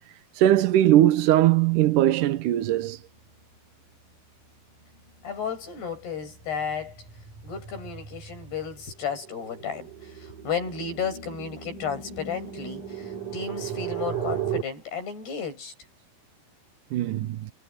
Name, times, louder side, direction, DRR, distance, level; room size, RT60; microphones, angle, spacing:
voice 1, 0.4-3.0 16.9-17.5, right 13 dB, 70° right, 2.2 m, -20 dB
sound 1, 5.0-5.3 5.7-14.6, right 8 dB, 50° right, 9.2 m, -36 dB
voice 2, 5.2-7.1 7.4-15.7, left 6 dB, 80° left, 10.5 m, -33 dB
omnidirectional pair, 4.6 m